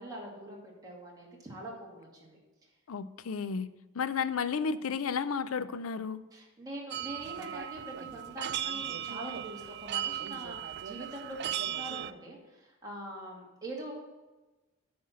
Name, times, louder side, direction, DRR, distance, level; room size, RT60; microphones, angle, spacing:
voice 1, 0.0-2.4 6.3-13.9, right 1 dB, 20° right, -3 dB, 2.2 m, -43 dB
voice 2, 2.9-6.2, left 5 dB, 85° left, 14 dB, 0.5 m, -33 dB
sound 1, 6.9-12.1, right 11 dB, 55° right, 0.4 m, -37 dB
9.5 x 4.4 x 7.3 m, 1.1 s
head